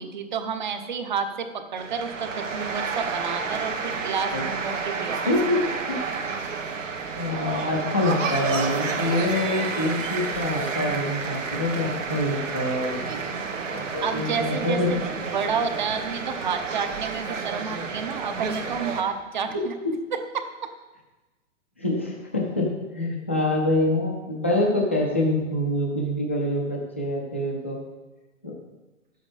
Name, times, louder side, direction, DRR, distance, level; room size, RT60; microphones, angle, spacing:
voice 1, 0.0-5.2 13.0-13.5 14.0-19.7 20.1-20.7, right 6 dB, 40° right, 8 dB, 0.9 m, -30 dB
sound 1, 1.8-19.0, right 5 dB, 85° right, 1.9 m, -30 dB
voice 2, 5.3-5.6 5.9-6.0 7.1-13.0 13.7-15.2 19.5-19.6 21.8-27.8 28.4-28.5, left 1 dB, 10° left, -2 dB, 0.4 m, -25 dB
11.5 x 8.1 x 5.0 m, 1.1 s
hypercardioid pair, 175°, 38 cm